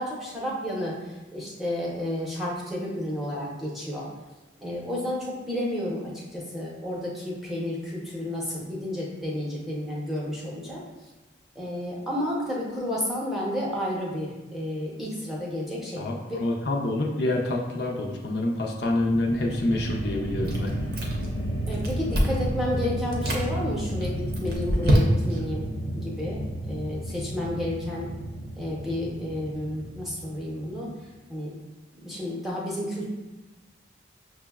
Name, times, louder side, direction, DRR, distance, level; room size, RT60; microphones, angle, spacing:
voice 1, 0.0-4.1 4.6-10.8 11.5-16.0 16.3-16.4 21.7-28.1 28.5-30.9 31.3-31.6 32.0-33.1, left 1 dB, ahead, -5 dB, 0.6 m, -31 dB
voice 2, 16.0-20.7, left 1 dB, 55° left, 0 dB, 0.4 m, -27 dB
sound 1, 18.8-31.0, right 1 dB, 80° left, 0.7 m, -32 dB
Chewing mastication, 20.4-21.4 21.7-22.5 23.0-23.4 24.0-25.5, equal, 55° right, 0.6 m, -25 dB
5.9 x 2.0 x 2.3 m, 1.1 s
head